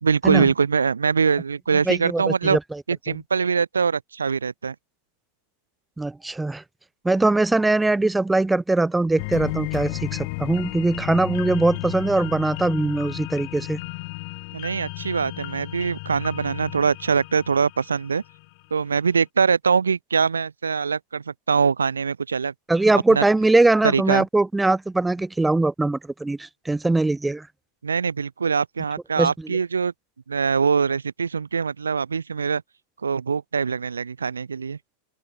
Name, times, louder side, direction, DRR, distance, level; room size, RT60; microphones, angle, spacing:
voice 1, 0.0-2.6 2.9-4.7 14.5-18.2 18.7-22.5 23.1-23.2 23.8-24.2 27.8-29.9 30.3-32.6 33.0-34.8, right 5 dB, 75° right, 0.7 m, -23 dB
voice 2, 1.9-2.8 3.1-3.2 6.0-6.6 7.0-13.8 22.7-27.5 29.2-29.3, right 2 dB, 5° right, 0.6 m, -21 dB
sound 1, 9.2-18.5 18.9-19.0, left 32 dB, 45° left, 0.9 m, -33 dB
open air
figure-of-eight pair, 90°, 0 cm